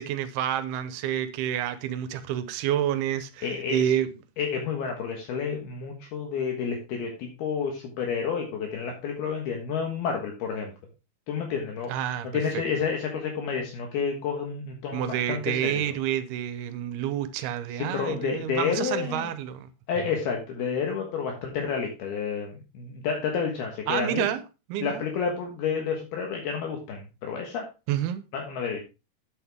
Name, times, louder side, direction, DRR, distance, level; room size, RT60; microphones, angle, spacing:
voice 1, 0.0-4.1 11.9-12.3 12.5-12.6 14.9-19.7 23.9-24.4 24.7-25.0 27.9-28.2, right 11 dB, 75° right, 2.4 m, -28 dB
voice 2, 3.4-3.9 4.4-10.7 11.3-15.9 17.8-19.3 19.9-24.3 24.8-27.7 28.3-28.8, left 6 dB, 65° left, 3.1 m, -30 dB
9.0 x 8.6 x 3.5 m
omnidirectional pair, 5.1 m